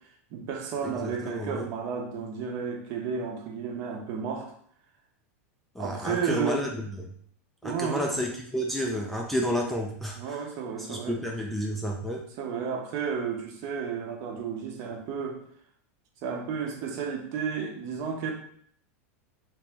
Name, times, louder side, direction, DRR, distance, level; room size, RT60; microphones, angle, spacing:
voice 1, 0.3-4.5 5.8-6.6 7.6-8.1 10.2-11.2 12.4-15.4 16.2-18.3, right 6 dB, 45° right, 3 dB, 0.7 m, -32 dB
voice 2, 0.8-1.7 5.8-7.1 7.6-10.4 10.9-12.2, equal, ahead, -1 dB, 0.3 m, -31 dB
3.0 x 3.0 x 3.4 m, 0.63 s
supercardioid pair, 150°, 8 cm